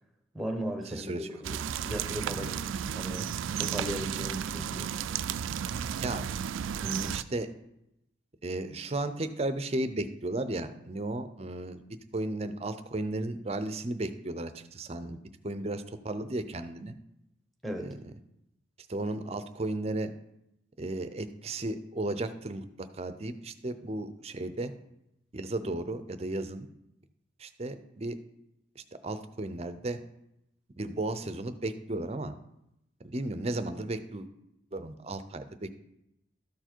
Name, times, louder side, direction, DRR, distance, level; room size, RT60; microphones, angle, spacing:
voice 1, 0.3-2.7 2.9-3.3 3.6-4.9 17.6-17.9, equal, ahead, 2 dB, 1.0 m, -36 dB
voice 2, 0.9-1.3 5.9-6.2 6.8-7.5 8.4-11.8 12.1-17.0 17.8-17.9 18.9-20.1 20.8-24.7 25.3-26.7 27.4-28.1 28.8-30.0 30.8-32.3 33.0-34.3 34.7-35.7, right 2 dB, 30° right, 10 dB, 0.5 m, -34 dB
sound 1, 1.4-7.2, right 8 dB, 85° right, 0.3 m, -33 dB
13.0 x 4.6 x 4.5 m, 0.83 s
head